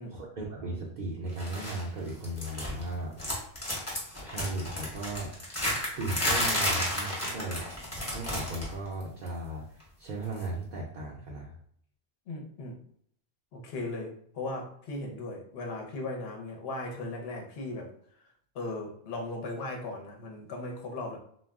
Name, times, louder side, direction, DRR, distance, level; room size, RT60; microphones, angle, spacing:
voice 1, 0.1-3.2 4.2-5.3 6.0-7.6 8.1-11.5, right 2 dB, 50° right, -4 dB, 0.6 m, -36 dB
sound 1, 1.4-1.8 2.1-2.9 3.2-8.7 9.0-9.3 10.4-10.5, equal, 15° left, 0.7 m, -32 dB
voice 2, 12.3-12.8 13.5-17.9 18.2-18.3 18.5-21.2, left 2 dB, 65° left, 1 dB, 0.8 m, -37 dB
2.3 x 2.1 x 3.4 m, 0.64 s
omnidirectional pair, 1.2 m